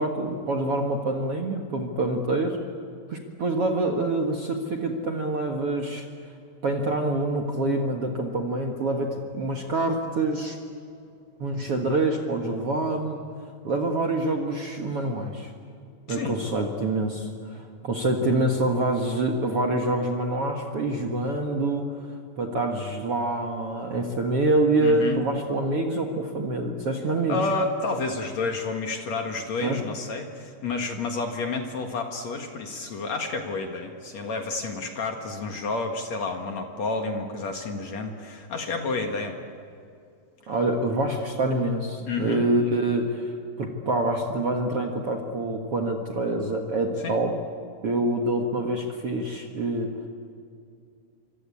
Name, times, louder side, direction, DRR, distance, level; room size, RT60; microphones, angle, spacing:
voice 1, 0.0-2.6 3.1-6.1 6.6-10.6 11.4-13.2 13.6-15.5 16.1-22.0 22.4-27.4 29.6-29.8 40.5-43.3 43.6-47.3 47.8-50.1, right 2 dB, 50° right, 2 dB, 2.3 m, -26 dB
voice 2, 24.8-25.2 27.3-39.4 42.1-42.4 47.0-47.2, left 3 dB, 55° left, 4 dB, 2.7 m, -30 dB
27.0 x 25.5 x 8.5 m, 2.4 s
omnidirectional pair, 4.1 m